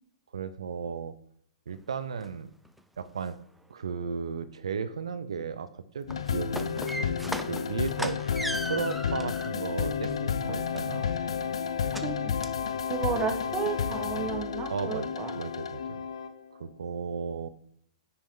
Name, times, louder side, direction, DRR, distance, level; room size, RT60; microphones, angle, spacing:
voice 1, 0.3-1.1 1.7-2.5 3.0-3.4 3.7-8.3 8.6-11.2 14.7-16.0 16.5-17.5, right 6 dB, 90° right, 13 dB, 0.6 m, -35 dB
sound 1, 1.7-1.8 2.2-2.3 2.6-3.3 5.9-9.6 10.0-11.1 11.9-12.1 12.4-12.6 13.0-13.1 13.5-13.6 14.0-14.1, right 1 dB, ahead, 0.4 m, -37 dB
sound 2, 6.1-16.5, left 7 dB, 90° left, 0.5 m, -31 dB
voice 2, 12.0-12.3 12.9-15.3, right 6 dB, 25° right, 4 dB, 1.4 m, -32 dB
9.6 x 4.4 x 3.8 m, 0.67 s
hypercardioid pair, 125°, 3 cm